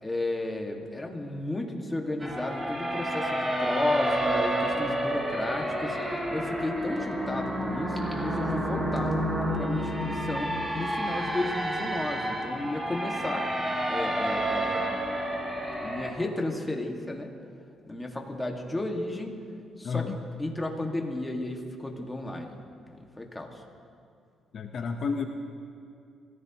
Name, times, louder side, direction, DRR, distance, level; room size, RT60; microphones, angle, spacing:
voice 1, 0.0-6.0 6.3-9.2 9.5-13.5 13.8-14.9 15.3-17.3 17.9-19.3 19.8-22.6 22.9-23.6, left 2 dB, 15° left, 1 dB, 1.9 m, -33 dB
sound 1, 2.2-16.1, right 1 dB, 15° right, 2.6 m, -30 dB
voice 2, 19.8-20.1 24.5-25.3, left 5 dB, 55° left, 4 dB, 1.0 m, -30 dB
26.0 x 15.5 x 3.0 m, 2.4 s
cardioid pair, 90°, 0 cm